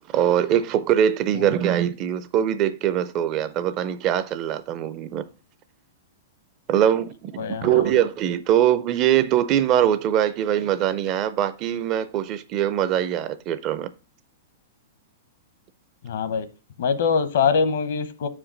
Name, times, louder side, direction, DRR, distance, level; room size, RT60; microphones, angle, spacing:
voice 1, 0.1-5.2 6.7-13.9, right 10 dB, 25° right, 0.4 m, -22 dB
voice 2, 7.4-8.0 16.0-16.5 16.8-18.3, left 5 dB, 65° left, 0.8 m, -24 dB
5.5 x 5.0 x 6.2 m
supercardioid pair, 165°, 0 cm